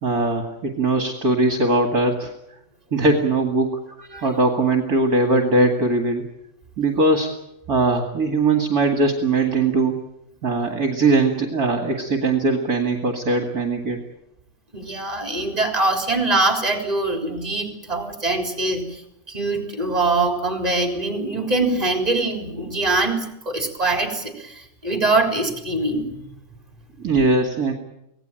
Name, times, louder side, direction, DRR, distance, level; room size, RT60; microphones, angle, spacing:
voice 1, 0.0-2.3 2.9-3.8 4.2-6.2 6.8-7.3 7.7-10.0 10.4-14.0 27.0-27.7, right 2 dB, 50° right, 5 dB, 2.5 m, -20 dB
voice 2, 14.7-19.0 19.3-26.3, right 2 dB, 20° right, 4 dB, 3.9 m, -23 dB
25.0 x 18.0 x 9.0 m, 0.82 s
omnidirectional pair, 2.1 m